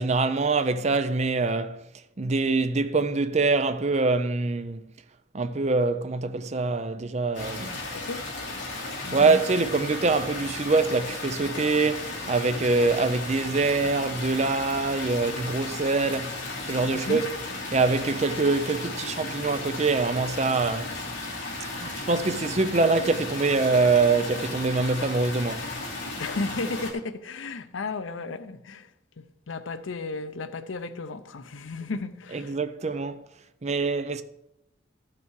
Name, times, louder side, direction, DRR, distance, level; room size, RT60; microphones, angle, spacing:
voice 1, 0.0-1.8 2.2-4.8 5.3-7.8 9.1-16.4 16.7-17.3 17.7-21.0 21.8-25.7 32.3-33.3 33.6-34.2, right 3 dB, 35° right, 0.5 m, -24 dB
sound 1, 7.3-26.9, left 2 dB, 70° left, 3.0 m, -35 dB
voice 2, 7.9-8.3 9.0-9.3 16.9-17.2 26.2-28.9 29.2-32.6, left 3 dB, 85° left, 0.7 m, -34 dB
13.5 x 5.9 x 4.7 m
head